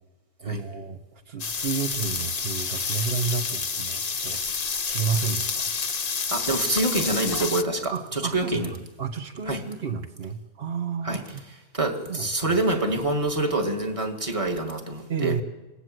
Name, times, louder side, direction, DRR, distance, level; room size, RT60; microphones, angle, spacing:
voice 1, 0.4-4.4 4.8-5.7 7.9-11.4 12.1-12.6 15.1-15.4, right 6 dB, 45° right, 9 dB, 1.5 m, -31 dB
sound 1, 1.4-7.6, left 5 dB, 35° left, 0.8 m, -29 dB
voice 2, 2.6-3.1 6.3-8.7 9.5-9.6 11.0-11.2 11.7-15.4, right 2 dB, 20° right, 3 dB, 2.3 m, -26 dB
27.0 x 18.5 x 7.9 m, 1.2 s
omnidirectional pair, 1.5 m